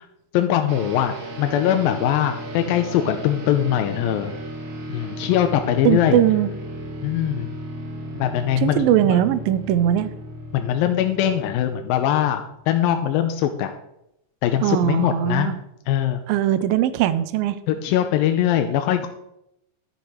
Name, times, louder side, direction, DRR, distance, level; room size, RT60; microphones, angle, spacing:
voice 1, 0.3-4.3 4.9-6.2 7.0-7.5 8.2-9.2 10.5-13.7 14.4-15.6 15.9-16.2 17.7-19.1, left 11 dB, 85° left, 6 dB, 2.5 m, -22 dB
sound 1, 0.7-12.9, equal, 45° right, 2.0 m, -35 dB
voice 2, 5.8-6.5 8.6-10.1 14.6-15.6 16.3-17.6, right 11 dB, 85° right, 13 dB, 2.4 m, -20 dB
10.5 x 8.0 x 5.0 m, 0.81 s
omnidirectional pair, 4.1 m